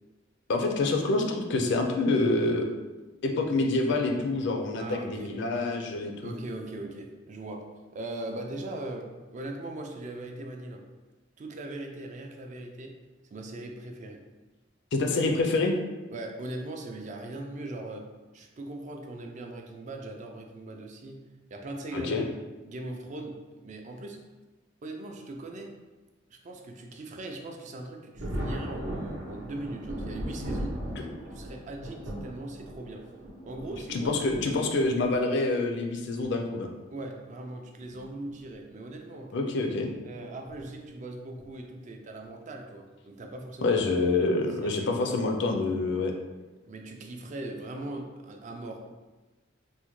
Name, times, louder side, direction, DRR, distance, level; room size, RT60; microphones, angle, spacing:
voice 1, 0.5-2.7 3.2-6.3 14.9-15.7 21.9-22.2 33.9-36.7 39.3-39.9 43.6-46.1, left 3 dB, 65° left, 3 dB, 0.4 m, -27 dB
voice 2, 4.8-5.4 6.2-10.8 11.4-12.9 13.3-14.2 16.1-18.0 18.3-22.3 22.6-24.2 24.8-25.7 26.3-30.8 31.3-33.1 33.5-34.1 36.9-39.4 40.0-43.8 44.2-44.3 44.6-45.2 46.6-48.9, right 2 dB, 40° right, 3 dB, 0.4 m, -40 dB
Thunder, 28.1-35.2 36.2-36.3 37.8-38.0 38.4-38.5 40.4-40.7 41.4-41.7, equal, 75° right, 0.7 m, -38 dB
3.5 x 2.1 x 3.0 m, 1.2 s
head